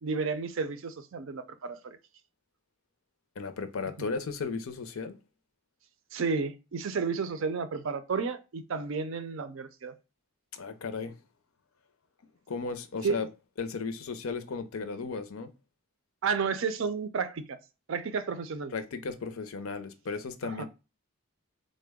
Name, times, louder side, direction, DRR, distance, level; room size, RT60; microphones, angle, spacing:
voice 1, 0.0-2.0 6.1-9.9 13.0-13.2 16.2-17.6 17.9-18.7 20.4-20.6, right 5 dB, 65° right, 0.4 m, -32 dB
voice 2, 3.4-5.2 10.5-11.1 12.5-13.3 13.6-15.5 18.7-20.7, left 4 dB, 75° left, 0.5 m, -35 dB
3.6 x 2.1 x 3.4 m
head